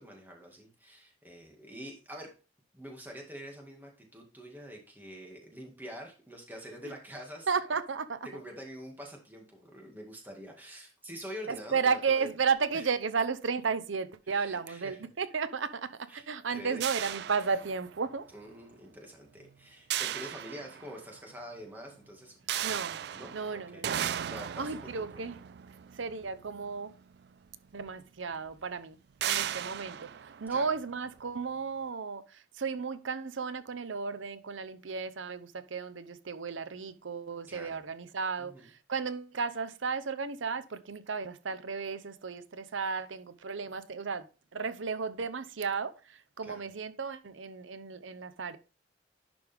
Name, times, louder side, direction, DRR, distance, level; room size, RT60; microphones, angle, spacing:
voice 1, 0.0-2.3 2.7-7.5 8.2-12.3 12.7-12.9 14.3-15.0 16.1-16.9 18.3-22.4 23.1-23.8 24.3-25.4 30.5-30.7 37.5-37.9 38.4-38.7 46.4-46.6, equal, 10° right, 2.0 m, -46 dB
voice 2, 7.5-8.2 11.5-18.2 22.6-23.0 23.3-24.3 24.6-25.4 26.0-26.9 27.7-29.0 29.2-38.5 38.9-44.3 44.5-48.6, right 5 dB, 80° right, 0.7 m, -34 dB
sound 1, 16.8-18.2 19.9-21.2 22.5-26.9 27.9-28.0 28.3-28.5 29.2-31.2, right 10 dB, 55° right, 0.3 m, -36 dB
11.0 x 5.2 x 3.5 m
head